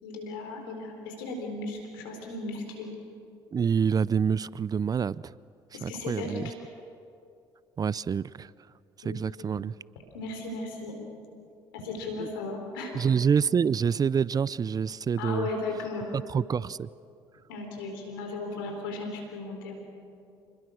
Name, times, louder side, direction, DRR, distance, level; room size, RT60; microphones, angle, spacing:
voice 1, 0.0-2.9 5.7-6.5 9.0-9.2 10.1-11.0 11.7-13.0 15.2-16.2 17.5-19.8, left 3 dB, 85° left, 4.2 m, -36 dB
voice 2, 3.5-5.2 5.8-6.4 7.8-8.5 9.0-9.7 12.2-12.3 12.9-15.5 16.1-16.9, right 6 dB, 35° right, 0.5 m, -27 dB
27.5 x 21.0 x 6.4 m
hypercardioid pair, 60°, 11 cm